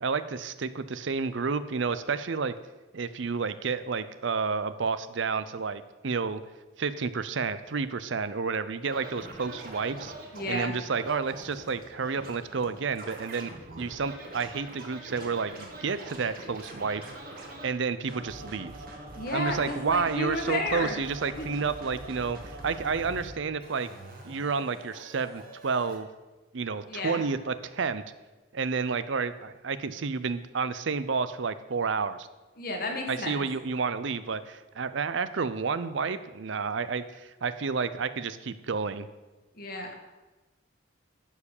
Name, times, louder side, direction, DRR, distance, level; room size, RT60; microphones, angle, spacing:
voice 1, 0.0-2.5 2.9-6.4 6.8-10.1 10.5-13.5 13.8-17.0 17.6-18.7 19.3-23.9 24.2-26.1 26.5-28.0 28.5-32.3 33.1-39.1, right 5 dB, 65° right, 13 dB, 0.6 m, -30 dB
Scratching (performance technique), 8.9-17.7 18.1-23.3 23.6-26.0, right 1 dB, 45° right, 1.8 m, -44 dB
voice 2, 10.3-10.7 19.1-20.9 21.3-21.5 26.9-27.2 32.6-33.4 39.5-39.9, left 2 dB, 45° left, 3 dB, 1.6 m, -32 dB
11.0 x 4.8 x 7.1 m, 1.1 s
head